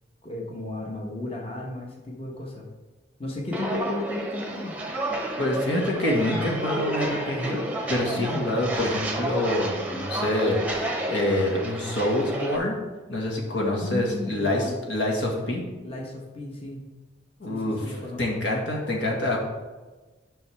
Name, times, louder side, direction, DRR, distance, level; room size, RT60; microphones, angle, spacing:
voice 1, 0.2-2.7 3.2-4.8 8.2-8.5 13.8-14.7 15.8-16.8 17.5-18.4, left 1 dB, 30° left, -2 dB, 1.1 m, -34 dB
Walk footsteps, 3.5-12.6, right 1 dB, 10° right, 0.8 m, -31 dB
voice 2, 5.4-7.6 7.9-12.7 13.1-15.6 17.4-17.8 18.2-19.4, left 1 dB, 85° left, -1 dB, 1.7 m, -26 dB
10.5 x 5.7 x 3.4 m, 1.3 s
head